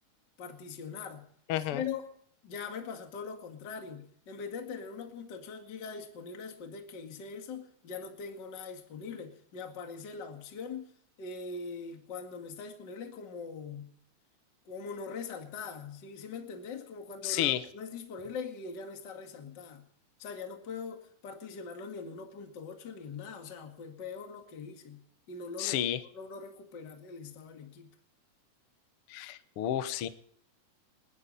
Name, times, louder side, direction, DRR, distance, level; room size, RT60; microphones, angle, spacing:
voice 1, 0.4-1.3 1.7-2.1 2.4-10.9 11.2-13.9 14.7-19.8 20.2-25.0 25.3-25.8 26.1-27.9, left 5 dB, 35° left, 2.2 m, -42 dB
voice 2, 1.5-1.8 17.2-17.6 25.6-26.0 29.1-30.1, left 12 dB, 80° left, 1.2 m, -31 dB
28.5 x 11.0 x 4.1 m
omnidirectional pair, 4.2 m